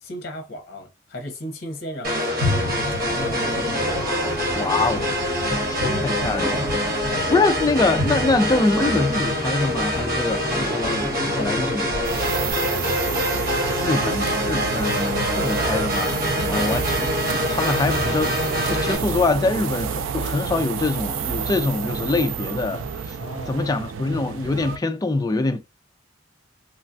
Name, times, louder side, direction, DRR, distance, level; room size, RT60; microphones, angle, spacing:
voice 1, 0.0-4.0 10.6-10.8 11.2-13.1 16.5-16.7 23.2-23.6, left 1 dB, 55° left, 0.7 m, -36 dB
sound 1, 2.0-19.0, equal, 50° right, 0.9 m, -25 dB
sound 2, 2.4-12.5, equal, 25° right, 1.2 m, -31 dB
voice 2, 4.5-11.1 11.4-11.8 13.8-16.8 17.3-23.2 23.5-25.6, left 3 dB, 20° left, 0.3 m, -24 dB
sound 3, 12.0-24.8, right 6 dB, 85° right, 0.3 m, -29 dB
3.1 x 2.2 x 2.5 m
head